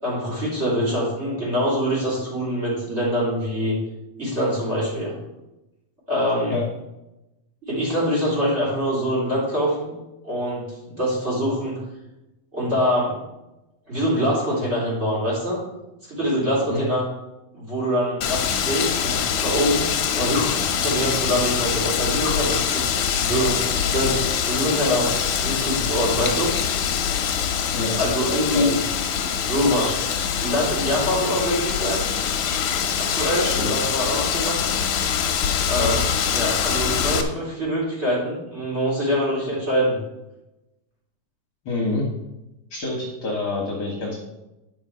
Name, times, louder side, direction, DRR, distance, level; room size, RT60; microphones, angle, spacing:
voice 1, 0.0-3.8 4.2-5.2 6.1-6.5 7.6-9.9 10.2-11.8 12.5-13.2 13.9-15.6 16.0-17.0 17.5-19.9 20.1-22.8 23.2-23.6 23.9-25.1 25.4-26.5 28.0-28.8 29.2-30.1 30.4-32.1 33.0-34.7 35.7-40.0, equal, 20° right, -5 dB, 3.6 m, -24 dB
Wind, 18.2-37.2, left 8 dB, 70° left, 2.2 m, -24 dB
voice 2, 28.3-28.7 33.4-33.7 35.8-35.9 41.7-42.1 42.7-44.2, left 2 dB, 55° left, -2 dB, 2.2 m, -27 dB
10.5 x 5.6 x 4.9 m, 0.95 s
omnidirectional pair, 3.9 m